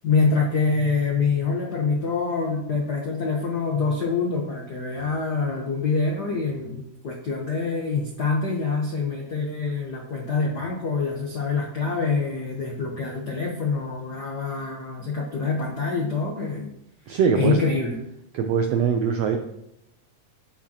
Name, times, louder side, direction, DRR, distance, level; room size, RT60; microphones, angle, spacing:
voice 1, 0.0-16.7 17.1-17.9, left 4 dB, 80° left, -1 dB, 0.9 m, -25 dB
voice 2, 17.1-17.6 18.3-19.4, right 6 dB, 90° right, 5 dB, 1.4 m, -22 dB
9.9 x 8.8 x 2.9 m, 0.82 s
omnidirectional pair, 3.7 m